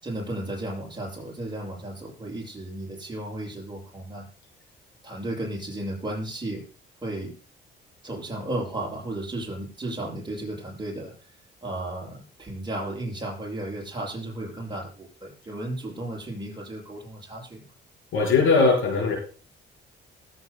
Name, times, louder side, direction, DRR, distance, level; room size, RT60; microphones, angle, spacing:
voice 1, 0.0-4.2 5.0-6.6 7.0-7.3 8.0-11.1 11.6-17.6, right 1 dB, 20° right, -2 dB, 6.9 m, -34 dB
voice 2, 18.1-19.1, left 4 dB, 85° left, 1 dB, 4.9 m, -20 dB
20.5 x 9.2 x 2.3 m, 0.39 s
cardioid pair, 90°, 20 cm